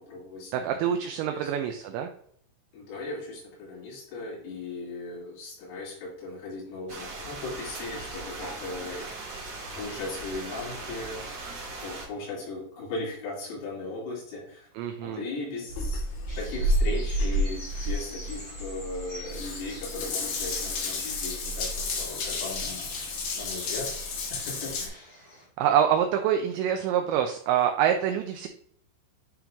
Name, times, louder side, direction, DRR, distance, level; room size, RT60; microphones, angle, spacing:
voice 1, 0.0-1.5 2.7-9.1 9.8-11.3 11.8-14.7 15.0-16.1 16.4-23.1 23.3-23.9 24.3-25.1, left 3 dB, 85° left, -6 dB, 5.5 m, -38 dB
voice 2, 0.5-2.1 14.8-15.2 25.6-28.5, right 9 dB, 90° right, 5 dB, 2.5 m, -25 dB
sound 1, 6.9-12.1, right 2 dB, 70° right, 1.5 m, -39 dB
Water tap faucet / Bathtub (filling or washing) / Drip, 15.7-24.9, left 1 dB, 70° left, 2.0 m, -30 dB
sound 2, 16.3-25.4, left 1 dB, 50° left, 0.6 m, -46 dB
10.0 x 3.6 x 2.9 m, 0.65 s
omnidirectional pair, 5.7 m